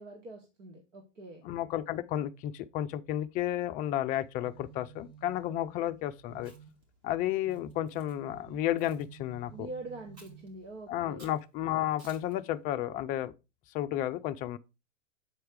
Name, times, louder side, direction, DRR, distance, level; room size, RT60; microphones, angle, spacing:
voice 1, 0.0-1.4 9.5-11.3, right 2 dB, 80° right, 1.9 m, -44 dB
voice 2, 1.4-6.5 7.0-9.7 10.9-13.3 13.7-14.6, left 12 dB, 25° left, 0.3 m, -32 dB
sound 1, 4.1-11.0, right 8 dB, 30° right, 2.3 m, -54 dB
Chewing mastication, 6.4-6.8 7.5-8.1 8.8-9.1 10.1-10.5 11.2-11.4 12.0-12.3, right 2 dB, 55° right, 3.9 m, -56 dB
8.0 x 4.6 x 4.6 m
hypercardioid pair, 115°, 37 cm